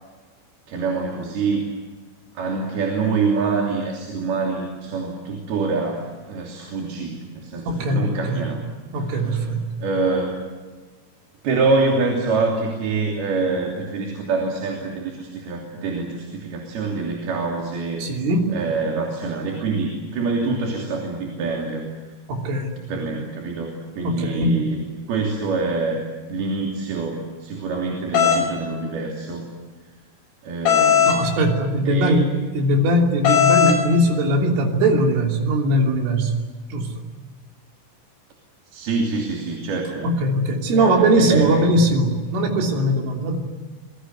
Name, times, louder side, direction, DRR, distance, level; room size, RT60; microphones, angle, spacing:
voice 1, 0.7-1.6 2.3-8.7 8.9-9.5 9.8-10.4 11.4-18.0 18.5-22.1 22.9-24.8 25.1-26.0 26.3-29.5 30.4-31.2 31.9-32.2 38.7-40.1 40.7-41.7, right 4 dB, 55° right, 0 dB, 4.7 m, -25 dB
voice 2, 7.7-8.4 8.9-9.6 18.0-18.6 22.3-22.8 24.0-24.6 31.1-36.3 36.7-37.0 40.0-43.4, right 1 dB, 75° right, 2 dB, 5.6 m, -20 dB
sound 1, 28.1-28.4 30.7-31.2 33.2-33.8, left 8 dB, 60° left, 7.5 m, -16 dB
28.0 x 22.5 x 8.2 m, 1.3 s
omnidirectional pair, 5.7 m